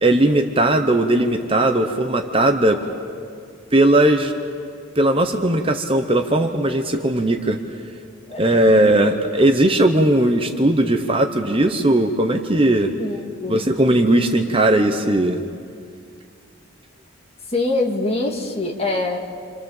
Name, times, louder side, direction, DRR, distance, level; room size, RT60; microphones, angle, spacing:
voice 1, 0.0-2.8 3.7-4.3 4.9-7.6 8.4-12.9 13.5-15.4, right 1 dB, 25° right, 5 dB, 1.1 m, -18 dB
voice 2, 8.3-8.6 13.0-13.6 17.5-19.2, left 2 dB, 30° left, 1 dB, 2.3 m, -24 dB
28.0 x 27.0 x 7.4 m, 2.3 s
head